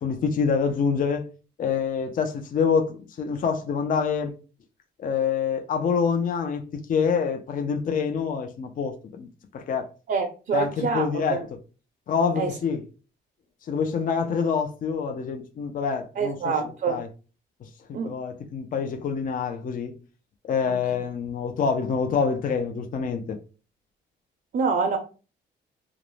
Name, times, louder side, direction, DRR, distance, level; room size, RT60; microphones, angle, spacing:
voice 1, 0.0-1.3 1.6-4.3 5.0-6.6 6.9-9.3 9.5-9.9 10.5-11.4 12.1-12.8 13.7-16.5 16.9-17.1 17.9-20.0 20.4-23.4, left 6 dB, 45° left, 0.5 m, -26 dB
voice 2, 10.1-11.5 12.4-12.5 16.2-17.0 17.9-18.1 24.5-25.0, right 5 dB, 45° right, 0.5 m, -26 dB
2.4 x 2.0 x 3.1 m
cardioid pair, 90°, 20 cm